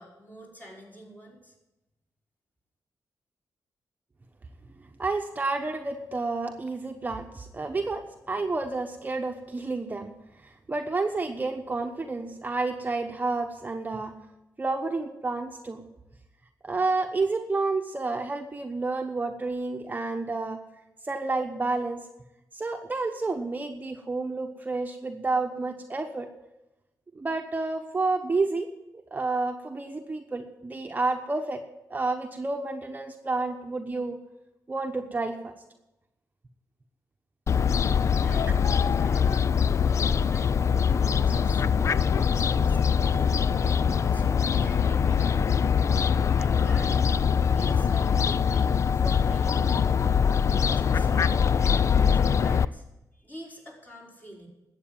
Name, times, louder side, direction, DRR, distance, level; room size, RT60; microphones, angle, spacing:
voice 1, 0.0-1.5 38.2-39.5 39.9-40.5 40.9-43.4 43.8-45.7 46.4-47.2 47.5-52.8 53.1-54.5, equal, 25° left, -3 dB, 5.0 m, -46 dB
voice 2, 5.0-10.1 10.4-14.1 14.6-15.8 16.6-20.6 21.0-22.0 22.5-26.3 27.1-28.7 29.1-31.6 31.9-34.2 34.7-35.5 38.3-38.5, right 3 dB, 25° right, 4 dB, 1.1 m, -30 dB
Fowl, 37.5-52.7, left 7 dB, 50° left, 0.4 m, -23 dB
sound 1, 41.6-45.9, left 6 dB, 90° left, 1.5 m, -39 dB
12.5 x 8.2 x 8.8 m, 0.97 s
cardioid pair, 80°, 7 cm